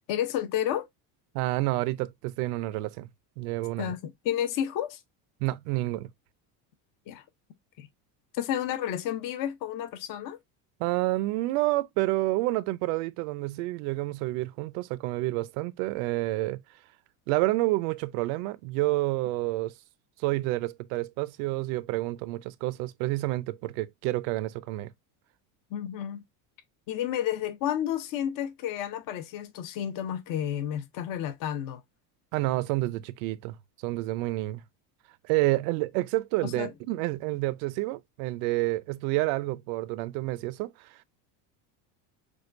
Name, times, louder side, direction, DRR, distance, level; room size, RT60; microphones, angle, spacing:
voice 1, 0.1-0.9 3.8-5.0 7.1-7.2 7.8-7.9 8.3-10.4 25.7-26.2 26.9-31.8 36.4-36.7, left 10 dB, 50° left, 0.8 m, -31 dB
voice 2, 1.3-3.1 3.4-3.9 5.4-6.1 10.8-16.6 17.3-19.7 20.2-24.9 32.3-34.6 35.2-41.0, right 19 dB, 75° right, 0.6 m, -29 dB
6.3 x 2.3 x 2.5 m
cardioid pair, 145°, 43 cm